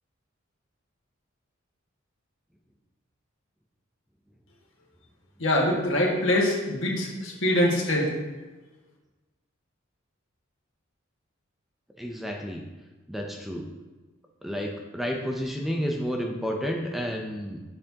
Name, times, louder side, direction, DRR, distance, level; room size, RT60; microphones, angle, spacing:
voice 1, 5.4-8.1, left 1 dB, 65° left, -2 dB, 1.7 m, -24 dB
voice 2, 12.0-12.6 13.1-13.7 14.4-17.6, equal, ahead, 0 dB, 0.5 m, -31 dB
7.5 x 6.9 x 2.8 m, 1.2 s
head